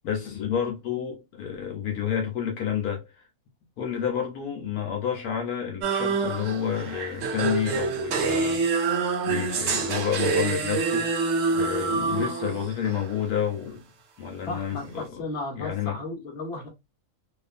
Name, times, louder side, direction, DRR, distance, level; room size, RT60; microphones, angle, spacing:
voice 1, 0.0-3.1 3.8-8.6 9.3-13.8 14.2-15.2 15.6-16.0, left 8 dB, 75° left, 1.2 m, -30 dB
sound 1, 5.8-13.1, right 4 dB, 65° right, 0.9 m, -26 dB
voice 2, 14.5-16.7, left 2 dB, 45° left, 1.1 m, -34 dB
2.8 x 2.4 x 2.4 m
omnidirectional pair, 1.6 m